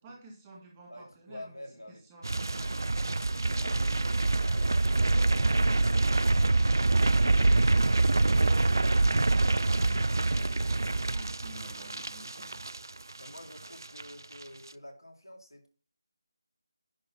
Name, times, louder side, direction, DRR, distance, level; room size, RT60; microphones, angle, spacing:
voice 1, 0.0-2.8 9.0-12.6, right 2 dB, 15° right, 1.6 m, -51 dB
voice 2, 0.9-2.0 3.4-3.7 10.2-10.6 13.2-15.7, left 1 dB, 85° left, 2.3 m, -48 dB
sound 1, 2.2-13.4 13.6-14.0 14.3-14.4, right 2 dB, 60° right, 0.3 m, -25 dB
10.0 x 3.8 x 5.9 m
figure-of-eight pair, 160°, 2 cm